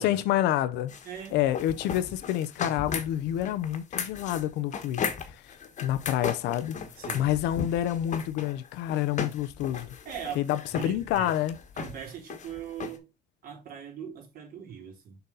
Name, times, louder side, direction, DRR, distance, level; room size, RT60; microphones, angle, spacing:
voice 1, 0.0-0.9 1.3-5.5 5.8-6.8 7.1-9.9 10.3-11.6, left 12 dB, 90° left, 0.7 m, -28 dB
sound 1, 0.9-13.0, left 6 dB, 45° left, 1.3 m, -36 dB
voice 2, 1.0-1.4 7.0-7.3 10.0-10.4 10.7-11.3 11.8-13.1 13.4-15.2, right 8 dB, 60° right, 3.2 m, -40 dB
6.9 x 4.0 x 3.9 m
cardioid pair, 110°, 17 cm